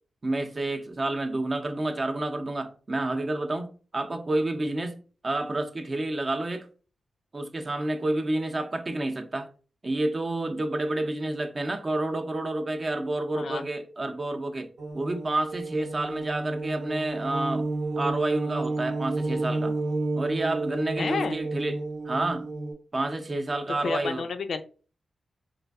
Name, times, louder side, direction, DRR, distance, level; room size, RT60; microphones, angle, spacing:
voice 1, 0.2-5.0 5.2-6.7 7.3-9.5 9.8-17.7 18.0-19.8 20.1-21.8 22.1-22.5 22.9-24.3, right 2 dB, 40° right, 0.5 m, -29 dB
sound 1, 14.8-22.7, right 2 dB, 90° right, 0.8 m, -31 dB
voice 2, 21.0-21.4 23.8-24.6, left 5 dB, 70° left, 0.3 m, -30 dB
3.1 x 2.5 x 2.3 m
cardioid pair, 75°, 0 cm